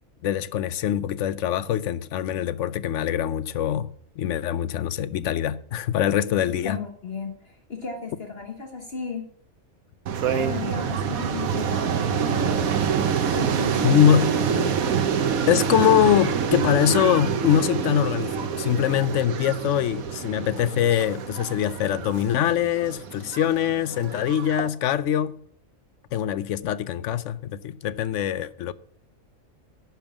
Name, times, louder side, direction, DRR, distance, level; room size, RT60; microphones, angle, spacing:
voice 1, 0.2-3.9 4.2-6.8 13.8-14.4 15.5-25.4 26.1-28.7, left 10 dB, 70° left, 0.8 m, -23 dB
voice 2, 6.6-9.3 10.3-12.8 13.3-14.8, left 5 dB, 50° left, 1.3 m, -35 dB
sound 1, 10.1-24.7, right 7 dB, 90° right, 1.3 m, -26 dB
10.5 x 5.3 x 7.2 m
omnidirectional pair, 1.4 m